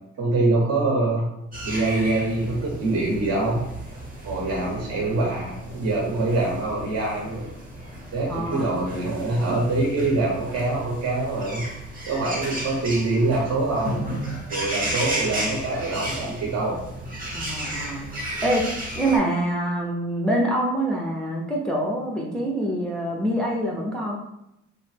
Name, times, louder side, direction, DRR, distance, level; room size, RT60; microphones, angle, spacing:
voice 1, 0.2-1.3 1.6-3.7 4.2-7.5 8.1-11.6 12.1-14.0 14.5-16.8, right 2 dB, 55° right, -3 dB, 0.8 m, -24 dB
sound 1, 1.5-19.2, right 1 dB, 30° right, 0.8 m, -34 dB
voice 2, 8.3-8.8 14.8-15.1 17.3-18.7 19.0-24.2, right 1 dB, ahead, -2 dB, 0.4 m, -26 dB
2.7 x 2.0 x 3.2 m, 0.85 s
cardioid pair, 90°, 30 cm